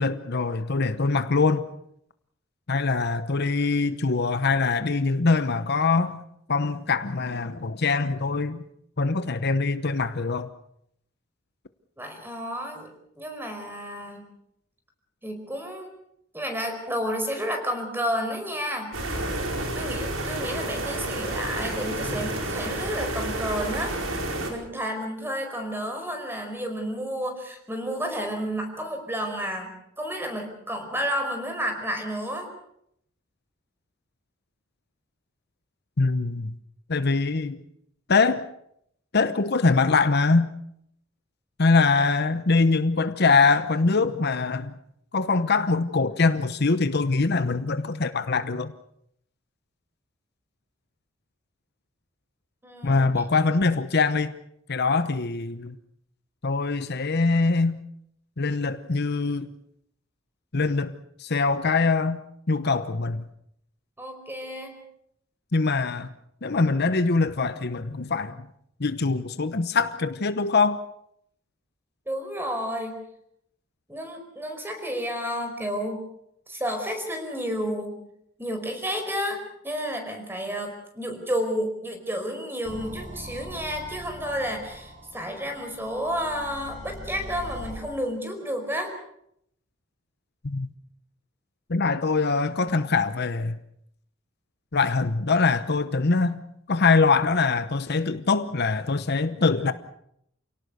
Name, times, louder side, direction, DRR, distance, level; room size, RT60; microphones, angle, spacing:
voice 1, 0.0-1.7 2.7-6.2 6.5-8.6 9.0-10.5 36.0-36.5 36.9-37.6 38.1-38.5 39.1-40.5 41.6-44.7 45.1-48.7 52.8-54.3 54.7-55.8 56.4-57.8 58.4-59.5 60.5-60.9 61.2-62.2 62.5-63.2 65.5-66.1 66.4-68.5 68.8-70.8 90.4-90.7 91.7-93.6 94.7-96.4 96.7-99.7, left 4 dB, 55° left, 0.9 m, -23 dB
voice 2, 12.0-12.9 13.1-14.2 15.2-15.9 16.3-18.9 19.7-23.9 24.5-32.5 52.6-53.2 64.0-64.8 72.1-73.0 73.9-76.0 76.5-78.0 78.4-88.9, equal, 10° right, 4.9 m, -31 dB
sound 1, 18.9-24.5, right 1 dB, 90° right, 4.7 m, -30 dB
sound 2, 82.6-87.8, equal, 40° right, 5.1 m, -41 dB
28.5 x 18.0 x 6.9 m
head